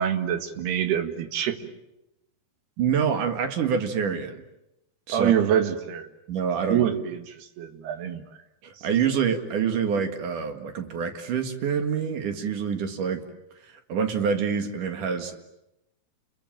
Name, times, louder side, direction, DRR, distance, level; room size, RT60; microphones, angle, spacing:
voice 1, 0.0-1.7 5.1-6.1 6.7-8.2, right 9 dB, 80° right, 8 dB, 3.7 m, -25 dB
voice 2, 2.8-4.4 5.1-5.3 6.3-6.8 8.6-13.2 13.7-15.4, right 7 dB, 60° right, 7 dB, 3.1 m, -26 dB
30.0 x 22.0 x 9.1 m, 0.90 s
omnidirectional pair, 4.5 m